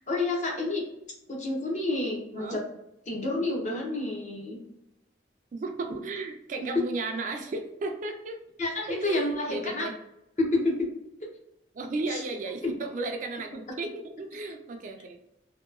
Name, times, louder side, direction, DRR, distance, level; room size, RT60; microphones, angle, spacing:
voice 1, 0.1-0.8 1.3-2.6 3.1-4.6 8.6-9.9 10.4-10.9 12.1-12.2, left 2 dB, 40° left, 0 dB, 0.7 m, -29 dB
voice 2, 5.5-8.4 8.9-9.9 11.7-15.3, right 3 dB, 45° right, 4 dB, 0.3 m, -34 dB
2.8 x 2.2 x 2.4 m, 0.85 s
head